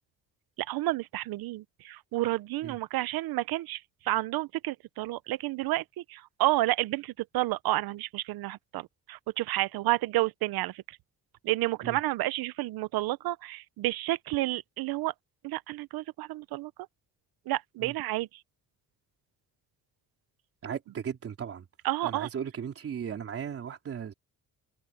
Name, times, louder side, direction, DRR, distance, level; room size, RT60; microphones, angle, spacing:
voice 1, 0.6-11.0 11.4-15.1 15.4-16.7 17.5-18.3 21.8-22.3, right 17 dB, 85° right, 0.7 m, -30 dB
voice 2, 20.6-21.7 22.0-24.1, right 8 dB, 40° right, 3.6 m, -36 dB
cardioid pair, 180°, 35 cm